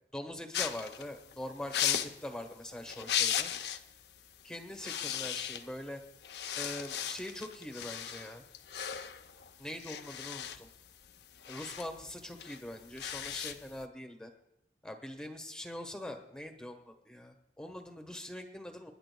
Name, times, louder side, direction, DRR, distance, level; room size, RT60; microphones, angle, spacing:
voice 1, 0.1-3.5 4.4-6.0 6.6-8.4 9.6-10.7 11.5-14.3 14.8-18.9, left 1 dB, 5° left, 4 dB, 1.1 m, -43 dB
sound 1, 0.5-3.9 4.2-4.4 4.7-5.9 6.2-13.8, left 10 dB, 70° left, 0.6 m, -37 dB
28.5 x 10.5 x 2.2 m, 0.83 s
head